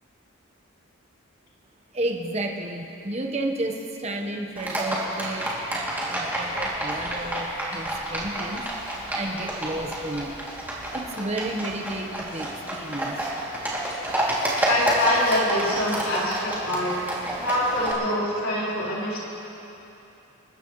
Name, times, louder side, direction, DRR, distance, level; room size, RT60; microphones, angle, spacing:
voice 1, 1.9-3.7 4.0-5.5 6.1-8.6 9.1-10.3 10.9-13.1, right 1 dB, 30° right, 2 dB, 1.1 m, -31 dB
Livestock farm animals working animals, 4.6-17.9, right 1 dB, 10° right, 2.6 m, -29 dB
voice 2, 14.4-16.9 17.4-19.2, left 1 dB, 75° left, -7 dB, 4.0 m, -25 dB
27.5 x 14.5 x 3.2 m, 2.9 s
head